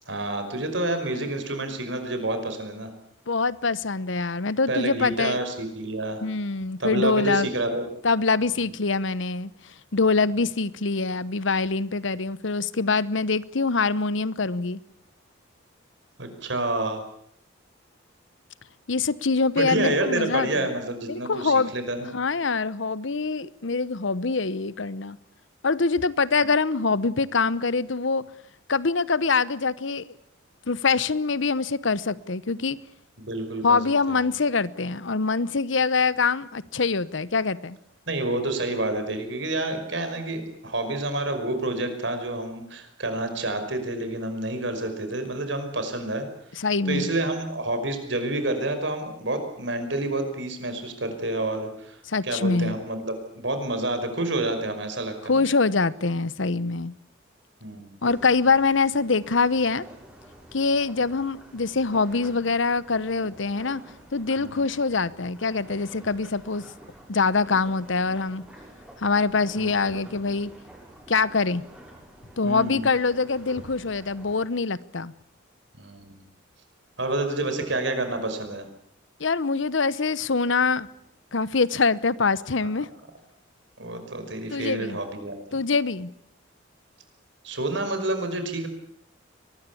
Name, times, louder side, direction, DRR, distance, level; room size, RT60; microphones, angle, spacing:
voice 1, 0.1-2.9 4.7-6.2 6.8-7.8 8.6-8.7 16.2-17.0 19.6-22.1 33.2-33.8 34.1-34.2 38.1-46.3 46.9-55.4 57.6-57.9 64.4-64.6 69.6-69.7 72.4-72.9 75.8-76.3 77.0-78.7 82.6-82.7 83.8-85.6 87.4-88.7, right 2 dB, 65° right, 5.4 m, -29 dB
voice 2, 3.3-5.4 6.2-7.5 8.0-9.5 9.9-14.8 18.9-20.7 21.1-21.7 22.1-25.2 25.6-28.2 28.7-30.1 30.7-32.8 33.6-37.8 46.6-47.1 52.1-52.8 55.3-56.9 58.0-59.9 60.5-63.8 64.1-66.6 67.1-68.4 69.0-70.5 71.1-71.6 72.4-75.1 79.2-80.9 81.3-82.9 84.5-85.0 85.5-86.1, left 4 dB, 70° left, 0.9 m, -24 dB
sound 1, 58.0-74.5, right 1 dB, 5° right, 6.6 m, -48 dB
23.0 x 20.5 x 8.5 m
head